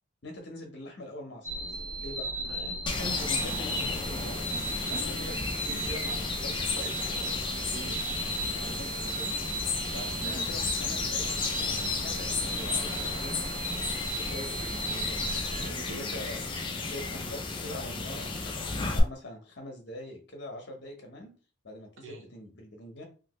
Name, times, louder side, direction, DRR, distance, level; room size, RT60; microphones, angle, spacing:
voice 1, 0.2-2.3 2.9-4.4 4.8-7.0 8.5-9.4 9.9-13.3 14.1-15.2 15.9-16.5 16.8-21.3 21.6-23.0, left 1 dB, 50° left, 3 dB, 0.8 m, -43 dB
sound 1, 1.4-15.7, right 1 dB, 35° right, 0.9 m, -35 dB
voice 2, 2.4-2.8 7.5-8.0 9.9-10.2 14.6-14.8 15.5-16.3 22.0-22.3, right 2 dB, 60° right, 2 dB, 0.6 m, -46 dB
sound 2, 2.9-19.0, left 4 dB, 20° left, 0.3 m, -33 dB
3.1 x 2.5 x 3.0 m, 0.37 s
head